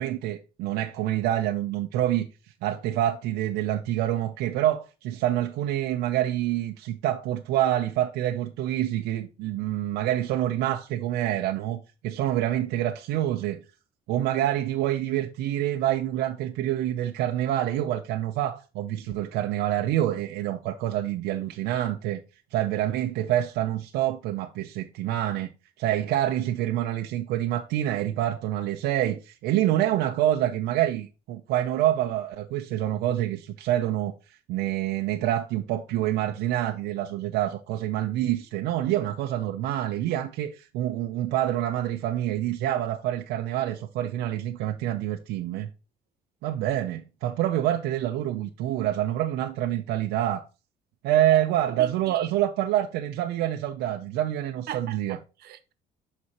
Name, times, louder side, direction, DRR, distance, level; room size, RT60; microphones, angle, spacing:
voice 1, 0.0-2.3 2.6-13.6 14.1-22.2 22.5-25.5 25.8-45.7 46.4-50.5 51.0-55.2, right 12 dB, 90° right, 0.6 m, -27 dB
voice 2, 54.7-55.7, right 11 dB, 70° right, 1.0 m, -38 dB
11.0 x 4.2 x 2.9 m
cardioid pair, 110°, 17 cm